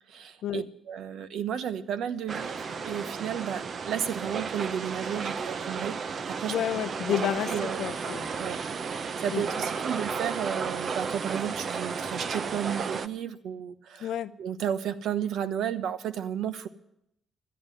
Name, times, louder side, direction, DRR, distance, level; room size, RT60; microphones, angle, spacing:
voice 1, 0.1-6.0 6.3-6.6 7.5-7.8 8.4-8.6 9.0-14.1 14.4-16.7, right 9 dB, 75° right, 12 dB, 1.0 m, -33 dB
sound 1, 2.3-13.1, right 5 dB, 50° right, 0.6 m, -33 dB
voice 2, 6.5-8.3 9.3-9.4 14.0-14.3, left 10 dB, 75° left, 12 dB, 0.7 m, -30 dB
13.0 x 9.6 x 9.6 m, 0.77 s
cardioid pair, 90°, 0 cm